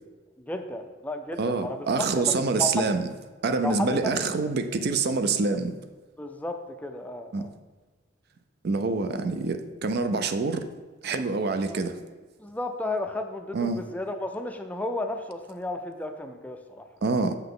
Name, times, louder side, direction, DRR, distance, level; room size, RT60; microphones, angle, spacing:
voice 1, 0.4-2.9 3.6-4.2 6.2-7.5 11.6-11.8 12.4-16.9, left 2 dB, 10° left, 6 dB, 0.4 m, -33 dB
voice 2, 1.4-3.1 3.4-5.7 7.3-7.5 8.6-10.7 11.0-12.0 13.5-13.8 17.0-17.4, right 4 dB, 55° right, 9 dB, 0.5 m, -26 dB
6.8 x 5.7 x 3.7 m, 1.4 s
head